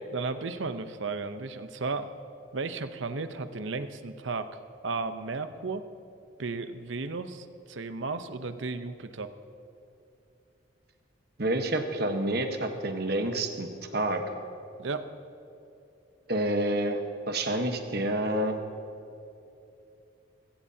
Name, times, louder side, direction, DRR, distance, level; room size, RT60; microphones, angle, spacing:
voice 1, 0.1-2.1 2.5-4.6 4.8-5.9 6.4-9.3 14.8-15.1, right 3 dB, 70° right, 10 dB, 0.7 m, -34 dB
voice 2, 11.4-14.2 16.3-18.6, right 1 dB, 50° right, 5 dB, 1.1 m, -28 dB
22.0 x 16.0 x 2.8 m, 2.7 s
head